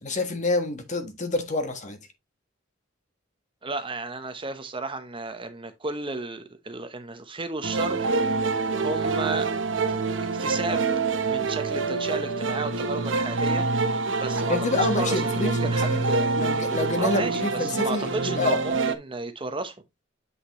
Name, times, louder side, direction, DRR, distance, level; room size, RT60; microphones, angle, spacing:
voice 1, 0.0-2.0 14.5-16.1 16.4-18.6, left 2 dB, 40° left, 1.4 m, -27 dB
voice 2, 3.6-8.1 8.7-9.5 10.1-10.9 11.3-16.4 17.0-19.7, right 3 dB, 25° right, 0.9 m, -33 dB
sound 1, 7.6-19.0, right 3 dB, 70° right, 0.9 m, -26 dB
8.1 x 5.8 x 3.0 m
head